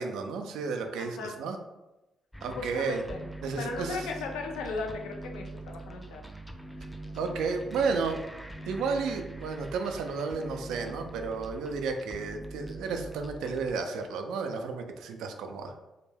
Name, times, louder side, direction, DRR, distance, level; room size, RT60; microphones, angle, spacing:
voice 1, 0.0-1.6 2.4-3.0 3.4-4.1 7.1-8.2 8.7-15.7, right 4 dB, 80° right, 5 dB, 0.3 m, -32 dB
voice 2, 1.0-1.4 2.5-3.3 3.6-6.2, left 4 dB, 85° left, 3 dB, 0.3 m, -37 dB
sound 1, 2.3-13.7, right 2 dB, 5° left, 0.3 m, -43 dB
2.2 x 2.1 x 3.2 m, 1.0 s
supercardioid pair, 65°, 0 cm